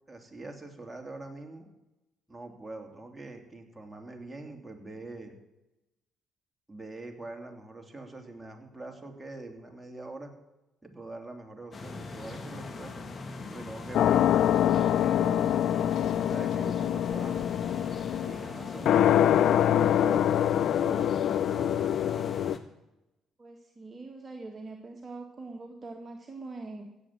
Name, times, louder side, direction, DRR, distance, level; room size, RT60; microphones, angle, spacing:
voice 1, 0.1-1.7 2.3-5.4 6.7-10.3 10.8-13.1 13.5-15.7 16.2-17.7 18.2-21.7, right 2 dB, 10° right, 2 dB, 3.0 m, -44 dB
sound 1, 11.7-22.6, left 3 dB, 40° left, 1.7 m, -40 dB
sound 2, 13.9-22.5, left 10 dB, 65° left, 0.4 m, -25 dB
voice 2, 23.4-26.9, right 3 dB, 35° right, 2 dB, 1.7 m, -43 dB
16.0 x 7.7 x 7.5 m, 0.97 s
supercardioid pair, 60°, 0 cm